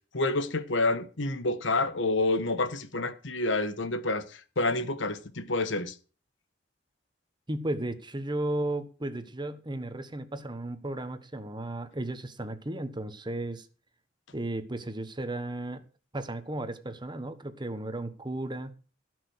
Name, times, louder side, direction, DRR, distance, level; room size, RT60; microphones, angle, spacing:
voice 1, 0.1-5.9, left 2 dB, 85° left, 1.3 m, -28 dB
voice 2, 7.5-13.7 14.3-15.8 16.1-18.7, right 1 dB, 25° right, 1.2 m, -34 dB
16.5 x 6.2 x 6.4 m
head